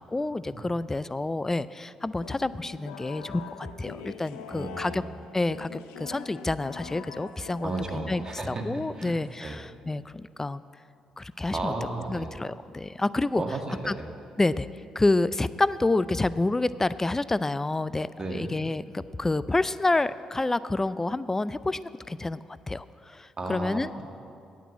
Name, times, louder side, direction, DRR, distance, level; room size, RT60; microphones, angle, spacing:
voice 1, 0.0-5.0 5.3-8.2 8.5-10.6 11.2-11.7 12.1-13.4 13.9-14.0 14.4-14.7 15.0-22.4 22.7-23.9, left 2 dB, 20° left, 16 dB, 0.4 m, -28 dB
sound 1, 2.2-9.6, left 7 dB, 90° left, 0.6 m, -44 dB
voice 2, 4.5-5.1 7.6-8.7 8.9-9.6 11.5-12.3 13.3-14.1 18.2-18.5 23.4-24.0, right 2 dB, 35° right, 2 dB, 1.8 m, -34 dB
9.0 x 8.2 x 8.4 m, 2.5 s
hypercardioid pair, 50°, 2 cm